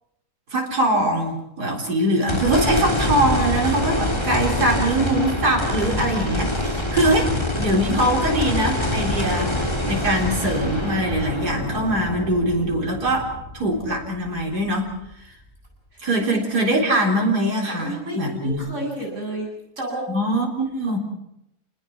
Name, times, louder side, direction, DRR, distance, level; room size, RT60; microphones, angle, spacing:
voice 1, 0.5-7.3 7.6-9.5 9.8-14.9 16.0-18.7 20.1-21.0, right 1 dB, 90° right, 0 dB, 4.4 m, -22 dB
sound 1, 2.3-14.6 15.1-15.2 18.5-18.6, left 1 dB, 15° left, 3.4 m, -25 dB
voice 2, 16.2-16.7 17.7-19.5 19.8-20.0, right 1 dB, 50° right, -1 dB, 8.5 m, -31 dB
29.5 x 19.5 x 6.2 m, 0.81 s
omnidirectional pair, 1.7 m